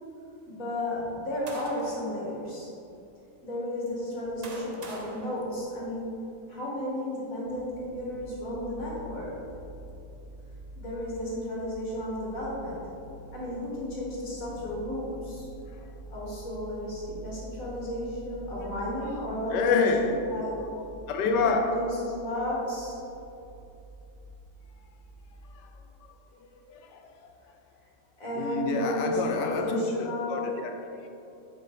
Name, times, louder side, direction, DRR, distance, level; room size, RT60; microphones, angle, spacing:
voice 1, 0.5-2.7 3.4-6.2 6.5-9.4 10.7-12.8 13.3-15.5 16.1-20.5 21.4-23.0 28.2-30.4, left 1 dB, 50° left, 2.3 m, -33 dB
sound 1, 1.0-2.1 2.9-3.0 3.9-6.2, right 2 dB, 80° right, 0.3 m, -45 dB
sound 2, 7.4-25.6, right 1 dB, 55° right, 1.0 m, -47 dB
voice 2, 19.0-20.2 21.1-21.8 25.5-25.7 26.7-27.4 28.3-30.9, left 4 dB, 80° left, 1.3 m, -28 dB
7.8 x 5.3 x 4.7 m
omnidirectional pair, 1.8 m